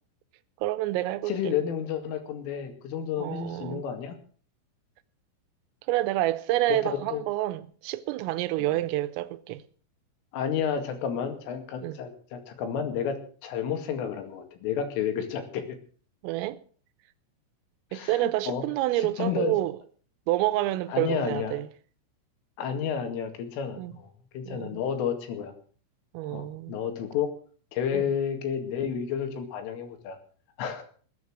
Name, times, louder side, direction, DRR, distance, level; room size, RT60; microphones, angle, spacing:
voice 1, 0.6-1.6 3.2-3.9 5.9-9.6 11.8-12.0 16.2-16.6 17.9-19.8 20.3-21.7 23.8-23.9 24.5-24.8 26.1-26.8 27.9-28.1, right 16 dB, 85° right, 3.4 m, -28 dB
voice 2, 1.3-4.2 6.7-7.2 8.6-8.9 10.3-15.7 17.9-18.7 19.0-19.6 20.9-21.6 22.6-25.5 26.3-27.3 27.7-30.2 30.6-30.8, left 8 dB, 75° left, 4.6 m, -31 dB
20.5 x 9.4 x 6.3 m
omnidirectional pair, 5.9 m